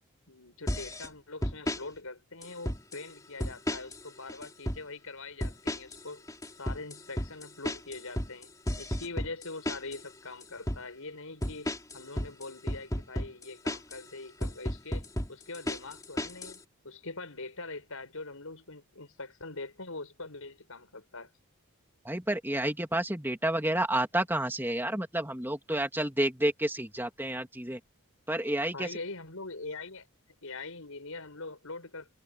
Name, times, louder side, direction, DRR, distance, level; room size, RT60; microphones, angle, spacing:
voice 1, 0.3-6.3 6.6-21.3 28.7-30.1 30.4-32.2, left 3 dB, 70° left, 5.3 m, -43 dB
sound 1, 0.7-1.1 1.4-1.8 2.4-3.0 3.4-4.0 4.3-4.8 5.4-6.0 6.3-10.0 10.4-10.8 11.4-14.0 14.4-16.6, left 1 dB, 15° left, 3.2 m, -33 dB
voice 2, 22.0-27.8 28.3-28.9, right 1 dB, 10° right, 2.7 m, -30 dB
head